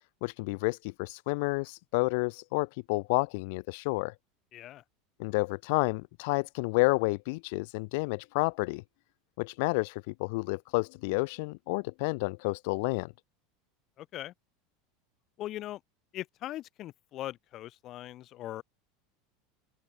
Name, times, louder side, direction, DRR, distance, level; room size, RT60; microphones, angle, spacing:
voice 1, 0.2-4.1 5.2-8.8 9.4-13.1, left 27 dB, 60° left, 0.3 m, -30 dB
voice 2, 4.5-4.8 14.0-14.3 15.4-15.8 16.1-18.6, left 14 dB, 35° left, 3.9 m, -40 dB
open air
supercardioid pair, 160°, 0 cm